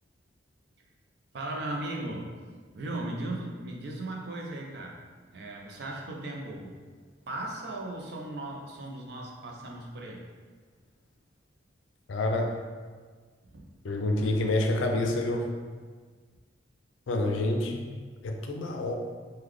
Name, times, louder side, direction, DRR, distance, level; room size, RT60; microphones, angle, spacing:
voice 1, 1.3-2.3 2.7-5.0 5.3-6.8 7.3-10.2 13.5-13.7, right 1 dB, 55° right, 0 dB, 0.5 m, -37 dB
voice 2, 12.1-12.6 13.8-15.5 17.1-17.8 18.2-18.9, left 2 dB, 75° left, 3 dB, 0.4 m, -27 dB
3.7 x 2.2 x 3.1 m, 1.5 s
head